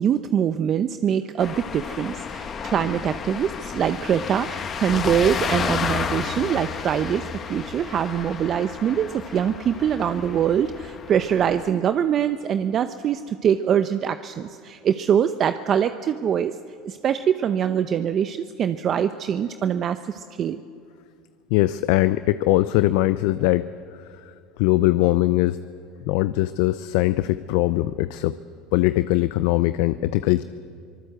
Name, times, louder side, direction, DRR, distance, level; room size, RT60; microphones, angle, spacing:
voice 1, 0.0-16.6 16.8-20.6, right 8 dB, 45° right, 10 dB, 0.7 m, -23 dB
sound 1, 1.4-11.7, left 6 dB, 35° left, 1.6 m, -31 dB
voice 2, 21.5-23.7 24.1-25.6 26.0-28.3 28.7-30.4, left 16 dB, 75° left, 14 dB, 0.6 m, -21 dB
24.5 x 19.0 x 8.0 m, 2.3 s
supercardioid pair, 100°, 0 cm